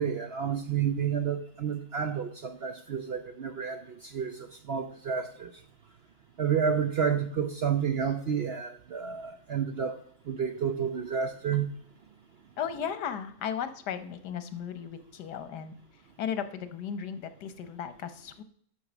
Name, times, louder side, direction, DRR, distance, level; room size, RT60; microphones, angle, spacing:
voice 1, 0.0-5.5 6.4-9.9 10.3-11.7, right 7 dB, 60° right, 7 dB, 0.6 m, -30 dB
voice 2, 12.6-15.7 16.2-18.4, left 8 dB, 85° left, 11 dB, 1.5 m, -35 dB
8.5 x 6.6 x 6.0 m, 0.62 s
omnidirectional pair, 1.7 m